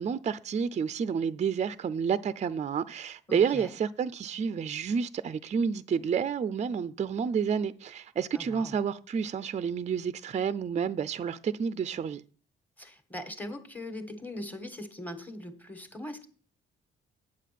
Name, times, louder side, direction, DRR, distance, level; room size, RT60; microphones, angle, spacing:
voice 1, 0.0-12.2, right 7 dB, 35° right, 0.5 m, -30 dB
voice 2, 3.3-3.7 8.3-8.7 12.8-16.3, left 1 dB, 10° left, 1.5 m, -40 dB
8.3 x 7.6 x 5.8 m
cardioid pair, 90°, 20 cm